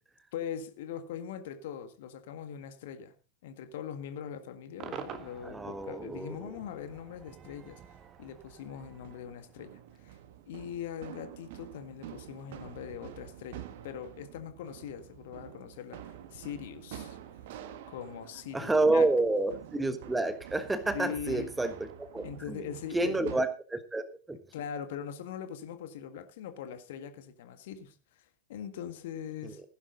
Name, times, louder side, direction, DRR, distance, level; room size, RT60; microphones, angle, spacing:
voice 1, 0.3-3.1 3.4-7.8 8.2-10.2 10.5-17.2 17.9-19.1 20.9-21.5 22.2-23.4 24.5-29.6, left 8 dB, 55° left, 9 dB, 1.7 m, -41 dB
Cheering / Crowd / Fireworks, 4.8-10.1, right 7 dB, 30° right, 1.6 m, -48 dB
voice 2, 5.4-6.5 18.5-21.7 22.0-22.7 22.9-24.4 29.4-29.5, right 2 dB, 10° right, 11 dB, 1.3 m, -29 dB
sound 1, 8.8-23.4, right 11 dB, 55° right, 1.4 m, -48 dB
15.5 x 11.0 x 3.9 m, 0.33 s
figure-of-eight pair, 90°, 0 cm